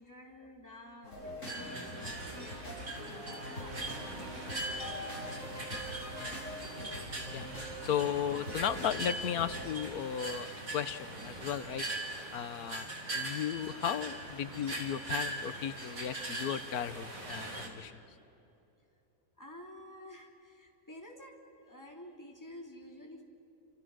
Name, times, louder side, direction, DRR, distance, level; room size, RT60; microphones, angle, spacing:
voice 1, 0.0-5.2 19.4-21.4 21.6-23.2, left 1 dB, 10° left, 0 dB, 3.2 m, -51 dB
sound 1, 1.0-9.7, equal, 50° left, 7.8 m, -44 dB
sound 2, 1.5-17.7, right 2 dB, 60° right, 4.2 m, -41 dB
voice 2, 7.8-10.5 10.7-11.9 12.3-18.0, left 9 dB, 75° left, 13 dB, 1.4 m, -35 dB
30.0 x 28.0 x 6.3 m, 2.9 s
omnidirectional pair, 1.6 m